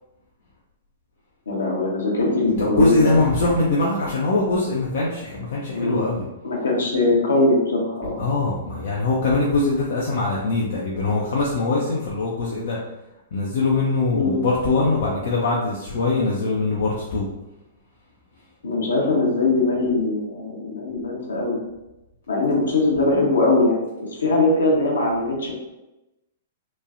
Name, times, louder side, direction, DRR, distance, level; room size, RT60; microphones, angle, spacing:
voice 1, 1.5-3.2 5.7-6.0 6.4-8.2 14.1-14.4 18.6-21.6 22.3-25.5, left 2 dB, 75° left, -2 dB, 0.8 m, -21 dB
voice 2, 2.6-6.2 8.2-12.8 13.3-17.2, left 2 dB, 60° left, -5 dB, 0.5 m, -22 dB
3.0 x 2.2 x 2.5 m, 0.97 s
figure-of-eight pair, 110°, 0 cm